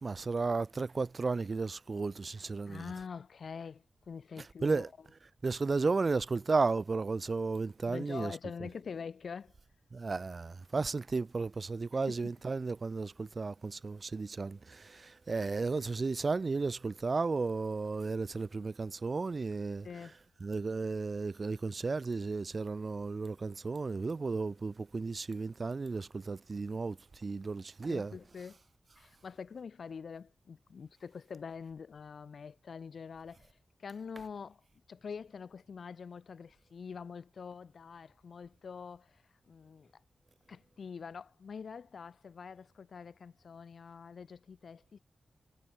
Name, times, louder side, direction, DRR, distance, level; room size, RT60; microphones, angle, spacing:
voice 1, 0.0-2.9 4.6-4.9 5.4-8.3 9.9-19.9 20.4-28.1, right 4 dB, 45° right, 0.8 m, -34 dB
voice 2, 2.7-4.8 7.9-9.6 12.1-12.3 15.3-15.5 19.8-20.2 27.9-28.6 29.0-34.6 34.9-39.9 40.5-45.0, left 6 dB, 70° left, 3.7 m, -45 dB
wide cardioid pair, 100°, 0 cm